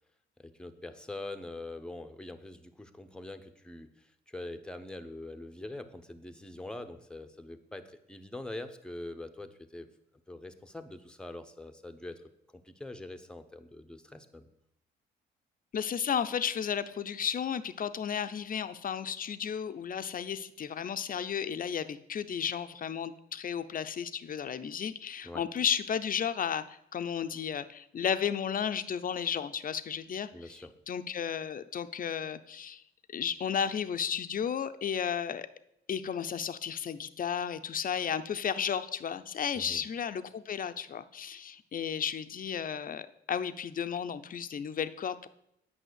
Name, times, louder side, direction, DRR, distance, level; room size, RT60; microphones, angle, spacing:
voice 1, 0.4-9.9 10.3-14.5 25.2-25.5 30.3-30.7 39.5-39.9, left 2 dB, 5° left, 8 dB, 0.9 m, -44 dB
voice 2, 15.7-30.6 30.9-32.8 33.1-35.5 35.9-45.3, left 8 dB, 45° left, 12 dB, 0.7 m, -33 dB
9.2 x 5.7 x 8.1 m, 0.79 s
cardioid pair, 90°, 20 cm